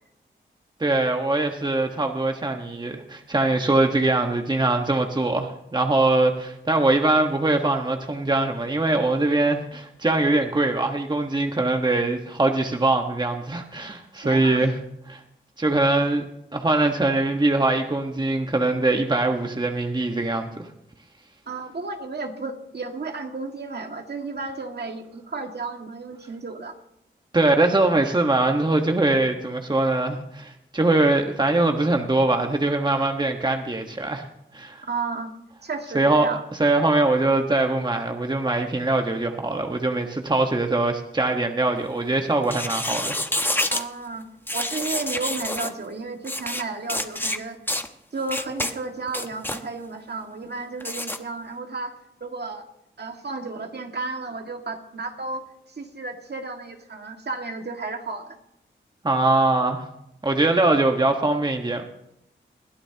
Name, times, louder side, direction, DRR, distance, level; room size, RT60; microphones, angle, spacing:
voice 1, 0.8-14.7 15.1-15.2 15.6-16.2 16.5-20.7 27.3-34.3 34.5-34.8 35.9-36.3 36.6-43.2 59.0-59.8 60.2-61.8, right 2 dB, 20° right, 4 dB, 1.4 m, -22 dB
voice 2, 14.2-14.7 21.5-26.7 34.8-35.3 35.6-36.4 43.7-44.3 44.5-47.6 48.1-51.9 52.2-52.7 53.0-58.3, right 3 dB, 55° right, 3 dB, 2.0 m, -33 dB
sound 1, 42.4-43.9 44.5-45.7 46.2-46.6 46.9-47.4 47.7-47.9 48.3-48.7 49.1-49.6 50.8-51.2, left 1 dB, 10° left, 1.1 m, -27 dB
21.5 x 13.0 x 2.9 m, 0.81 s
cardioid pair, 60°, 21 cm